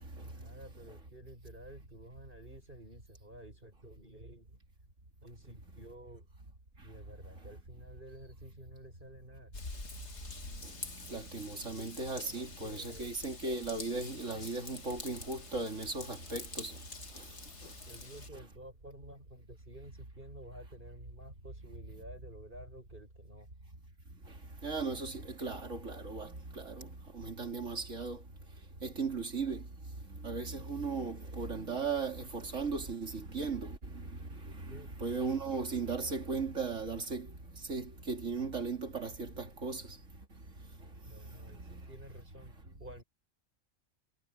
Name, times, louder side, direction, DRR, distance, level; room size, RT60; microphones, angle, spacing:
voice 1, 0.2-4.6 5.2-6.3 6.8-9.5 12.2-13.1 17.9-23.5 34.7-34.9 41.1-43.0, right 1 dB, 40° right, 7.8 m, -52 dB
Raindrop / Vehicle horn car horn honking / Trickle dribble, 9.5-18.3, left 3 dB, 60° left, 2.3 m, -47 dB
voice 2, 11.1-16.7 24.6-26.9 27.1-28.2 28.8-29.6 30.2-33.8 34.7-37.3 37.7-39.8 41.7-41.8, right 4 dB, 70° right, 3.3 m, -37 dB
omnidirectional pair, 1.3 m